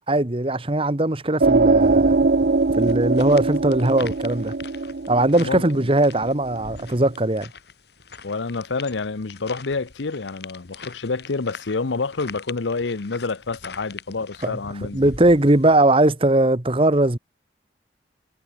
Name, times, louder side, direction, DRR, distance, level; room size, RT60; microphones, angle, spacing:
voice 1, 0.1-2.1 2.8-4.5 5.1-7.5 14.4-14.6 14.9-17.2, right 1 dB, 30° right, 1.3 m, -19 dB
sound 1, 1.4-6.6, right 3 dB, 60° right, 0.6 m, -21 dB
sound 2, 1.8-15.8, left 4 dB, 65° left, 2.4 m, -42 dB
voice 2, 5.4-5.9 8.2-15.1, left 4 dB, 85° left, 0.8 m, -28 dB
head